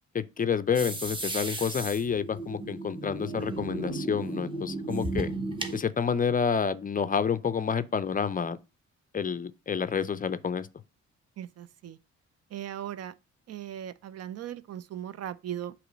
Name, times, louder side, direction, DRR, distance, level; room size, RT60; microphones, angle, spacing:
voice 1, 0.1-5.3 5.7-8.6 9.1-10.7, left 6 dB, 30° left, 0.4 m, -29 dB
sound 1, 0.7-5.8, right 2 dB, 15° right, 1.0 m, -34 dB
voice 2, 11.4-12.0 12.5-13.1 13.5-15.7, right 11 dB, 55° right, 0.5 m, -38 dB
7.9 x 3.0 x 5.1 m
cardioid pair, 100°, 30 cm